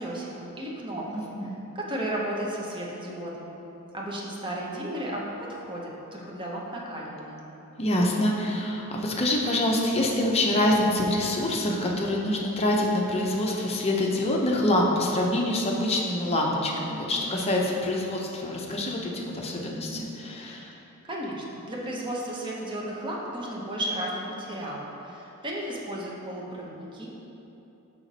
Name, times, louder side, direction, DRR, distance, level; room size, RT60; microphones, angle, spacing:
voice 1, 0.0-1.3 1.7-3.6 3.9-7.4 21.0-27.1, right 1 dB, 20° right, -3 dB, 0.8 m, -34 dB
voice 2, 1.1-1.6 7.8-20.7, left 1 dB, 30° left, -1 dB, 0.6 m, -26 dB
5.7 x 4.9 x 4.0 m, 3.0 s
head